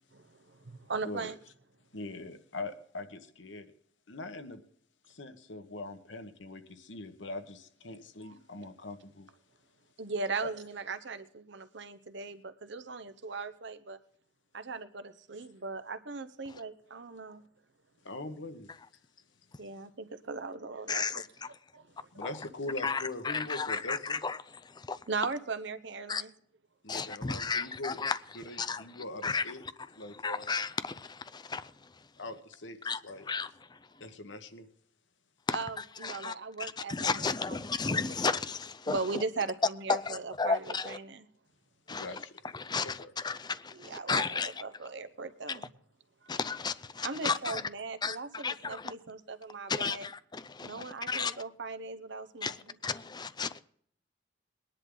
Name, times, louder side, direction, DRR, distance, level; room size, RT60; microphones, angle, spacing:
voice 1, 0.1-1.4 8.2-8.3 10.0-14.0 14.5-17.4 19.6-22.1 25.1-26.3 35.5-36.9 37.5-37.6 38.9-41.3 43.7-45.7 46.2-46.3 47.0-50.1 50.6-52.8, right 4 dB, 70° right, 1.0 m, -39 dB
voice 2, 1.9-3.7 4.1-4.6 5.1-9.3 10.4-10.5 18.0-18.7 22.1-24.2 26.8-28.0 28.3-29.6 29.9-30.5 32.2-33.3 34.0-34.7 41.9-42.4 42.8-43.1, left 2 dB, 75° left, 1.4 m, -42 dB
voice 3, 20.9-21.3 22.8-25.0 26.1-26.2 26.9-28.2 28.6-29.4 30.2-31.7 32.8-33.0 33.3-33.5 35.5-36.3 36.6-39.0 39.9-41.0 41.9-42.1 42.5-44.5 45.5-45.6 46.3-47.6 48.0-48.9 49.7-51.4 52.4-53.6, left 4 dB, 25° left, 0.5 m, -33 dB
21.0 x 10.5 x 3.9 m
head